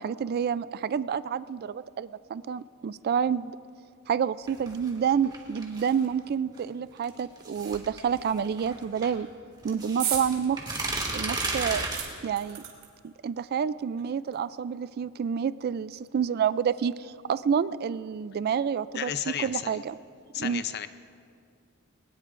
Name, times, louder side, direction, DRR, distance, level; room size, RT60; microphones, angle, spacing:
voice 1, 0.0-3.5 4.1-9.3 9.6-10.7 11.1-11.8 12.2-12.6 13.0-20.0 20.4-20.6, right 7 dB, 45° right, 16 dB, 0.3 m, -29 dB
sound 1, 4.5-6.1 7.0-9.1 9.6-12.0, right 2 dB, 20° right, 1.9 m, -33 dB
sound 2, 10.0-10.3 10.7-10.8 11.4-13.1 14.0-14.1 14.3-14.4, right 9 dB, 85° right, 3.0 m, -34 dB
voice 2, 18.9-19.8 20.3-20.9, left 9 dB, 50° left, 11 dB, 0.6 m, -33 dB
21.5 x 19.0 x 2.5 m, 2.4 s
head